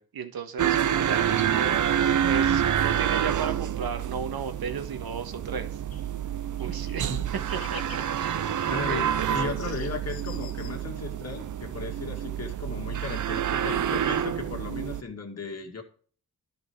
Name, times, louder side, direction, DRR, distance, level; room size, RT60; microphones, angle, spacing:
voice 1, 0.0-1.8 2.2-5.7 6.6-7.1 7.5-9.7, right 6 dB, 85° right, 7 dB, 1.5 m, -35 dB
sound 1, 0.6-15.0, right 9 dB, 60° right, 0.6 m, -28 dB
sound 2, 5.9-6.2 6.5-9.2 9.6-11.1, left 7 dB, 85° left, 1.2 m, -48 dB
voice 2, 8.7-15.8, left 4 dB, 45° left, 2 dB, 2.3 m, -36 dB
13.0 x 5.3 x 4.7 m, 0.43 s
wide cardioid pair, 130°, 35 cm